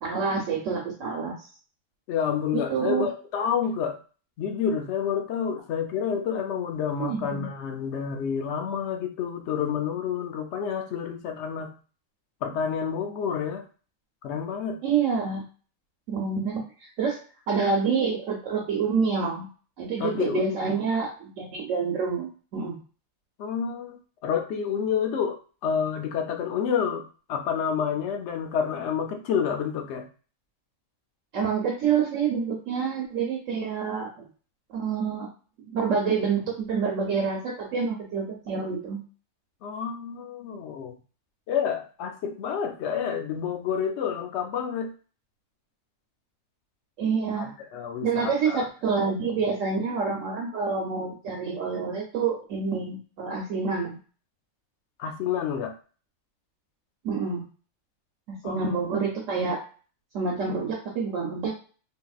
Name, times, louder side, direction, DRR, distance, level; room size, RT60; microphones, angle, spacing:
voice 1, 0.0-1.5 2.5-3.1 7.0-7.5 14.8-15.4 16.1-17.2 17.5-19.5 19.8-22.8 31.3-34.3 34.7-35.3 35.7-39.0 47.0-47.5 48.0-54.0 57.0-57.5 58.3-59.6 60.1-61.5, right 5 dB, 70° right, 0 dB, 1.1 m, -27 dB
voice 2, 2.1-4.0 4.4-11.7 12.4-13.6 14.2-14.8 20.0-20.8 23.4-27.0 27.3-30.1 39.6-40.9 41.5-44.9 47.4-48.6 55.0-55.7 58.4-58.8, left 7 dB, 65° left, 4 dB, 0.9 m, -29 dB
3.5 x 2.8 x 2.3 m, 0.38 s
omnidirectional pair, 1.4 m